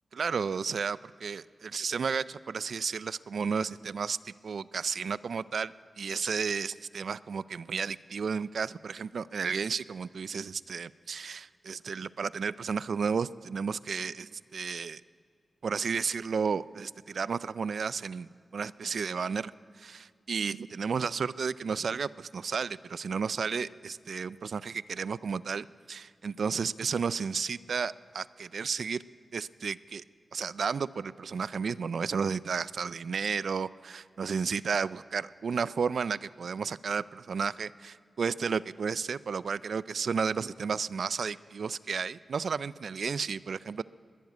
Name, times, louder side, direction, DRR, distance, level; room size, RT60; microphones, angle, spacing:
voice 1, 0.1-15.0 15.6-19.5 19.8-29.0 29.3-30.0 30.3-43.8, right 5 dB, 75° right, 18 dB, 0.3 m, -32 dB
21.0 x 7.2 x 9.3 m, 2.3 s
cardioid pair, 50°, 0 cm